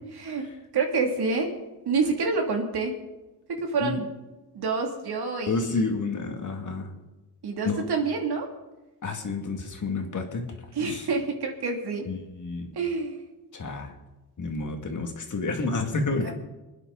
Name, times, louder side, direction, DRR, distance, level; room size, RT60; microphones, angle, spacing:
voice 1, 0.1-0.5 0.7-1.6 1.8-2.9 3.5-4.1 4.5-5.7 7.4-8.5 10.7-12.1 12.7-13.2 16.2-16.3, right 4 dB, 65° right, 2 dB, 2.9 m, -27 dB
voice 2, 5.5-6.9 7.7-7.8 9.0-10.4 10.9-11.1 12.1-12.7 13.5-13.9 14.4-16.3, left 3 dB, 45° left, 4 dB, 2.2 m, -29 dB
25.5 x 9.8 x 4.1 m, 1.1 s
cardioid pair, 90°, 41 cm